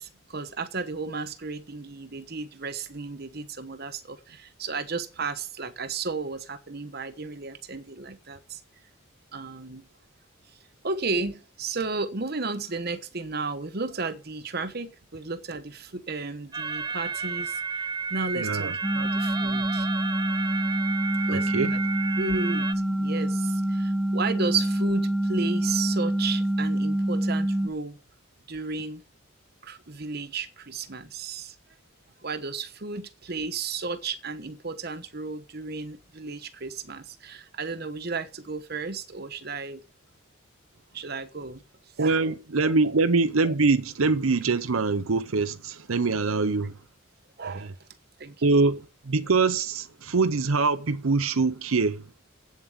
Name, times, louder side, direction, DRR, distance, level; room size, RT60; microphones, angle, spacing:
voice 1, 0.0-8.6 9.3-9.9 10.8-19.9 21.3-21.8 22.2-28.0 28.5-29.0 29.6-31.6 32.2-39.8 40.9-41.6 42.0-42.2 42.6-42.7 47.4-47.9 48.2-48.4, right 4 dB, 50° right, 1.1 m, -33 dB
sound 1, 16.5-22.7, right 5 dB, 20° right, 0.6 m, -32 dB
voice 2, 18.4-18.7 21.3-21.7 42.0-46.8 47.5-47.7 48.4-52.1, right 3 dB, 85° right, 0.7 m, -24 dB
sound 2, 18.8-27.7, right 1 dB, 5° right, 1.2 m, -26 dB
8.5 x 7.4 x 8.0 m
head